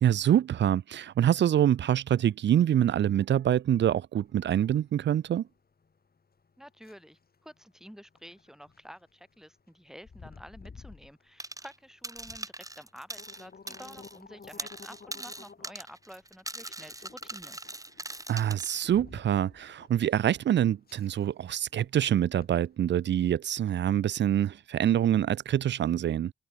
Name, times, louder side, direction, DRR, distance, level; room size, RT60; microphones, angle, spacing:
voice 1, 0.0-5.4 18.3-26.3, right 10 dB, 80° right, 0.5 m, -25 dB
sound 1, 4.2-23.1, left 5 dB, 60° left, 5.5 m, -54 dB
voice 2, 6.6-17.6, equal, 5° right, 4.5 m, -50 dB
sound 2, 11.4-11.8 12.0-14.2 14.4-18.9, right 1 dB, 20° right, 4.7 m, -41 dB
cardioid pair, 60°, 18 cm